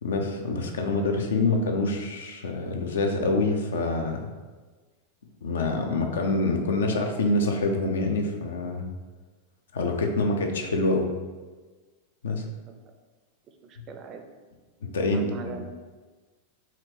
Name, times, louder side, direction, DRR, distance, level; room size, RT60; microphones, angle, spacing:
voice 1, 0.0-4.3 5.4-8.9 9.7-11.1 12.2-12.4 14.8-15.5, left 2 dB, 65° left, 3 dB, 0.5 m, -26 dB
voice 2, 13.7-14.2 15.1-15.6, right 5 dB, 35° right, 5 dB, 0.4 m, -40 dB
4.3 x 2.4 x 3.0 m, 1.3 s
figure-of-eight pair, 90°, 0 cm